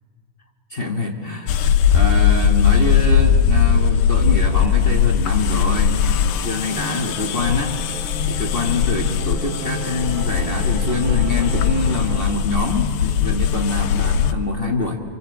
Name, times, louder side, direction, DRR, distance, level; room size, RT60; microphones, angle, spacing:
voice 1, 0.7-7.8 8.3-15.0, left 3 dB, 60° left, 0 dB, 0.5 m, -25 dB
sound 1, 1.5-14.3, left 7 dB, 80° left, 2.6 m, -19 dB
sound 2, 5.9-12.3, right 7 dB, 90° right, 3.1 m, -35 dB
27.5 x 25.0 x 8.0 m, 2.2 s
omnidirectional pair, 3.9 m